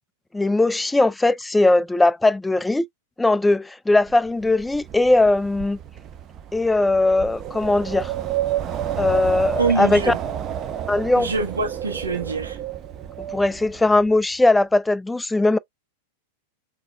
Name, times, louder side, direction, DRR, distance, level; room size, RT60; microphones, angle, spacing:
voice 1, 0.3-2.9 3.2-5.8 6.5-8.1 9.0-10.1 10.9-11.3 13.3-15.6, left 2 dB, 5° left, 0.3 m, -19 dB
Wind, 4.1-14.2, right 10 dB, 35° right, 0.9 m, -30 dB
voice 2, 9.6-10.2 11.2-12.6, right 4 dB, 85° right, 1.2 m, -24 dB
6.0 x 2.8 x 2.3 m
figure-of-eight pair, 95°, 0 cm